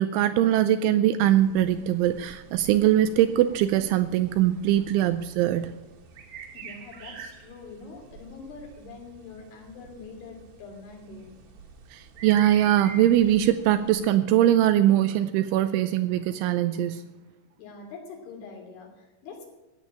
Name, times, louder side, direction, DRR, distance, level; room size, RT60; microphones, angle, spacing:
voice 1, 0.0-5.7 11.9-17.0, right 12 dB, 80° right, 11 dB, 2.8 m, -22 dB
sound 1, 1.2-14.0, right 6 dB, 60° right, 3.1 m, -47 dB
voice 2, 6.5-11.3 17.6-19.5, left 4 dB, 70° left, 1 dB, 5.2 m, -44 dB
14.5 x 9.2 x 8.7 m, 1.1 s
omnidirectional pair, 5.8 m